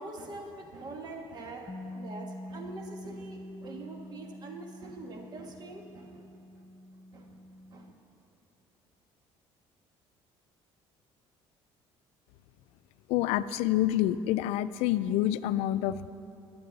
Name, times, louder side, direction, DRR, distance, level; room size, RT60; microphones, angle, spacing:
voice 1, 0.0-6.2 7.1-7.4 7.7-7.9, right 2 dB, 40° right, 3 dB, 1.5 m, -44 dB
Bass guitar, 1.7-7.9, left 1 dB, 15° left, 0.5 m, -46 dB
voice 2, 13.1-16.1, left 13 dB, 85° left, 15 dB, 0.4 m, -27 dB
22.0 x 7.7 x 4.0 m, 2.7 s
cardioid pair, 130°, 10 cm